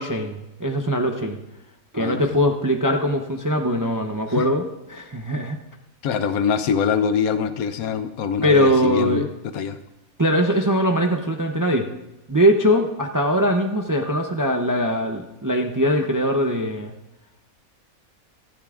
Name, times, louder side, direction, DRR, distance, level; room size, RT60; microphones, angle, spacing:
voice 1, 0.0-1.4 1.9-4.6 4.9-5.6 8.4-9.3 10.2-11.9 12.3-16.9, equal, 25° right, 4 dB, 0.4 m, -21 dB
voice 2, 2.0-2.4 4.3-4.4 6.0-9.8, left 6 dB, 80° left, 10 dB, 1.2 m, -24 dB
25.0 x 10.5 x 2.5 m, 0.96 s
omnidirectional pair, 1.5 m